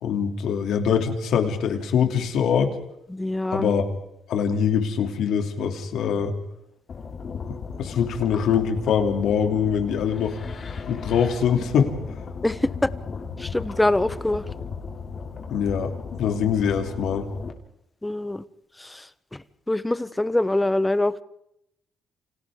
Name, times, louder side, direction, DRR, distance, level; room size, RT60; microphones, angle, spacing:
voice 1, 0.0-2.7 3.5-3.8 4.3-6.3 7.5-10.4 10.8-11.9 15.5-17.3, left 7 dB, 75° left, 2.7 m, -23 dB
voice 2, 3.1-3.7 12.4-12.9 13.4-14.4 18.0-18.4 18.8-19.1 19.3-21.2, left 1 dB, 10° left, 0.9 m, -24 dB
sound 1, 6.9-17.5, left 5 dB, 50° left, 2.8 m, -36 dB
29.0 x 26.0 x 3.7 m
cardioid pair, 90°, 0 cm